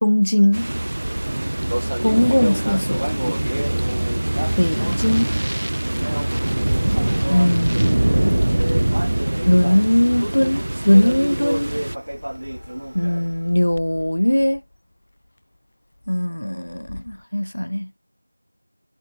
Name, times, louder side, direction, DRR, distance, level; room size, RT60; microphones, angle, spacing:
voice 1, 0.0-0.7 2.0-3.0 4.6-5.3 7.3-8.4 9.5-11.7 12.9-14.6 16.1-17.9, left 1 dB, 65° left, 0.5 m, -19 dB
sound 1, 0.5-12.0, right 1 dB, 35° right, 0.4 m, -23 dB
Speech, 1.1-13.5, right 1 dB, 60° right, 1.1 m, -32 dB
Bird, 9.9-17.2, left 1 dB, 30° left, 4.3 m, -45 dB
figure-of-eight pair, 180°, 0 cm